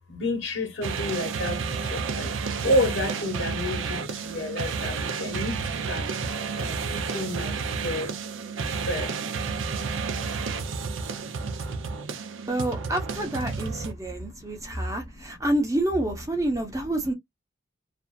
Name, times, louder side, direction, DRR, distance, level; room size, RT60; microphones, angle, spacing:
voice 1, 0.1-1.6 1.9-2.3 2.6-4.0 4.2-5.5 5.9-6.0 6.6-7.5 7.8-8.1 8.9-9.1, left 1 dB, 70° left, 1.1 m, -29 dB
sound 1, 0.8-13.9, right 5 dB, 75° right, 0.5 m, -31 dB
voice 2, 12.5-17.1, right 1 dB, 15° right, 0.7 m, -28 dB
2.6 x 2.4 x 2.2 m
head